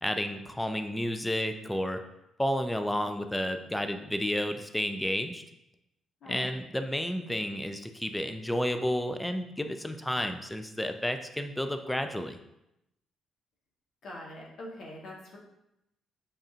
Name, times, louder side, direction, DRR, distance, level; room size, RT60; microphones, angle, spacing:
voice 1, 0.0-2.0 2.4-5.4 6.3-12.4, equal, 10° left, 7 dB, 0.3 m, -31 dB
voice 2, 14.0-15.4, left 1 dB, 60° left, -2 dB, 1.1 m, -43 dB
5.4 x 2.6 x 2.4 m, 0.85 s
cardioid pair, 90°, 0 cm